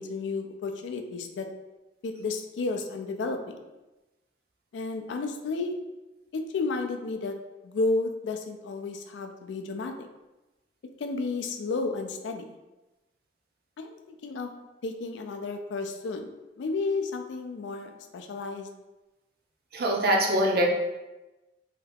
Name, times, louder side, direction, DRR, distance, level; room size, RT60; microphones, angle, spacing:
voice 1, 0.0-1.5 2.0-3.6 4.7-5.8 6.3-7.4 7.6-10.1 11.0-12.6 13.8-14.5 14.8-16.3 16.6-18.7, left 3 dB, 75° left, 5 dB, 0.3 m, -32 dB
voice 2, 19.7-20.7, equal, 55° right, 0 dB, 0.5 m, -23 dB
2.8 x 2.3 x 3.4 m, 1.1 s
head